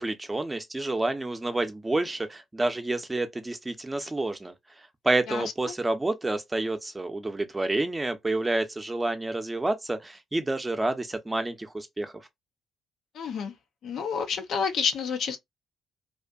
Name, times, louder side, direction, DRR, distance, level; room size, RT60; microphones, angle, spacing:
voice 1, 0.0-4.5 5.0-12.1, right 2 dB, 20° right, 0.7 m, -29 dB
voice 2, 13.1-13.5 13.8-15.4, left 6 dB, 60° left, 0.5 m, -29 dB
2.5 x 2.4 x 2.3 m
figure-of-eight pair, 45°, 0 cm